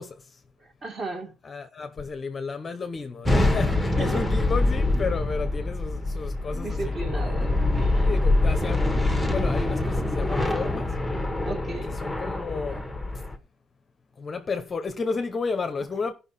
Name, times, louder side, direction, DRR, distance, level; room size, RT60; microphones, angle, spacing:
voice 1, 0.0-0.4 1.4-7.5 8.0-8.9 9.3-11.0 11.8-13.2 14.2-16.1, left 4 dB, 25° left, 0.8 m, -32 dB
voice 2, 0.6-1.3 4.0-4.2 6.5-8.1 11.4-12.0, right 2 dB, 30° right, 2.3 m, -35 dB
sound 1, 3.2-13.4, left 2 dB, ahead, 1.3 m, -25 dB
15.0 x 5.6 x 4.2 m
cardioid pair, 145°, 0 cm